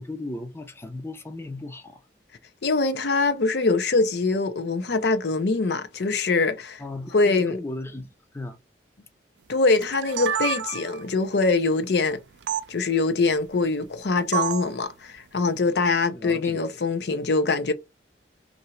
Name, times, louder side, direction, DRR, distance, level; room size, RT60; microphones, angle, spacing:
voice 1, 0.0-2.0 6.8-8.6 16.1-16.7, left 1 dB, 15° left, 0.5 m, -36 dB
voice 2, 2.6-6.8 7.1-7.6 9.5-12.2 12.7-17.7, left 3 dB, 70° left, 0.6 m, -23 dB
sound 1, 9.8-11.1 12.5-12.6 14.3-14.7, right 9 dB, 85° right, 0.4 m, -28 dB
2.8 x 2.6 x 4.3 m
head